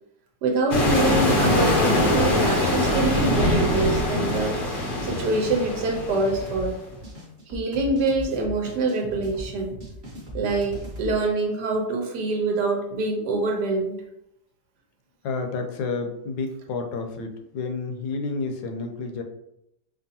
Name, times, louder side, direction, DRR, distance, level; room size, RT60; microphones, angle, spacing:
voice 1, 0.4-4.6 5.0-6.8 7.5-9.7 10.3-14.0, right 3 dB, 80° right, 1 dB, 1.4 m, -25 dB
sound 1, 0.7-6.6, left 1 dB, 50° left, 0.6 m, -23 dB
sound 2, 6.2-11.1, equal, 35° right, 0.9 m, -38 dB
voice 2, 15.2-19.2, left 4 dB, 75° left, 4 dB, 1.1 m, -30 dB
5.2 x 2.5 x 2.7 m, 0.81 s
omnidirectional pair, 1.8 m